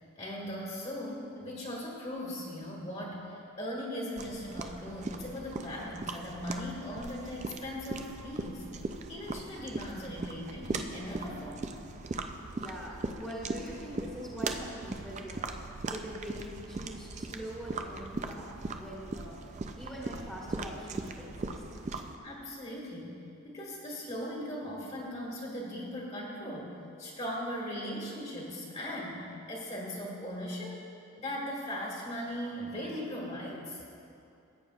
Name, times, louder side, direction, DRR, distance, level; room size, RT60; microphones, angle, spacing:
voice 1, 0.2-11.7 22.2-23.1 23.4-30.8 31.2-33.8, equal, 30° left, -3 dB, 1.6 m, -39 dB
sound 1, 4.2-22.2, right 3 dB, 35° right, 0.4 m, -39 dB
voice 2, 12.5-15.6 15.8-19.4 19.8-21.6, equal, 5° left, -7 dB, 1.3 m, -43 dB
16.0 x 8.5 x 2.3 m, 2.6 s
head